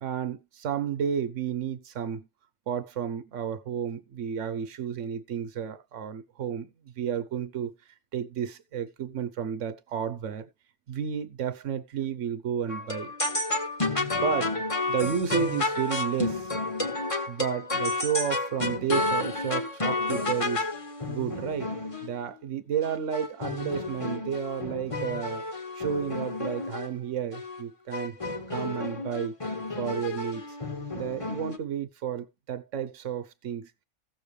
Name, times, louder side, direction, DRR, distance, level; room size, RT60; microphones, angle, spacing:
voice 1, 0.0-2.3 2.7-7.7 8.1-10.5 10.9-13.1 13.9-14.5 14.9-16.5 17.3-20.7 21.1-21.7 22.0-25.4 25.7-28.2 28.5-29.3 29.8-30.4 31.0-33.7, right 8 dB, 80° right, 1.2 m, -32 dB
sound 1, 12.7-22.1 22.8-26.9 27.3-27.6 27.9-31.6, left 2 dB, 25° left, 1.3 m, -31 dB
16.0 x 6.9 x 3.2 m
omnidirectional pair, 1.2 m